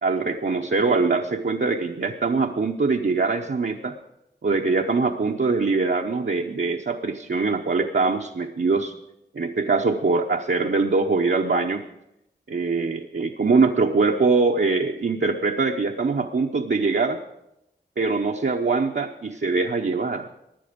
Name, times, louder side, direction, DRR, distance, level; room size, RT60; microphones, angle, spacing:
voice 1, 0.0-4.0 4.4-8.9 9.3-11.8 12.5-17.2 18.0-20.3, right 4 dB, 65° right, 1 dB, 0.9 m, -23 dB
16.5 x 10.5 x 5.2 m, 0.85 s
cardioid pair, 40°, 19 cm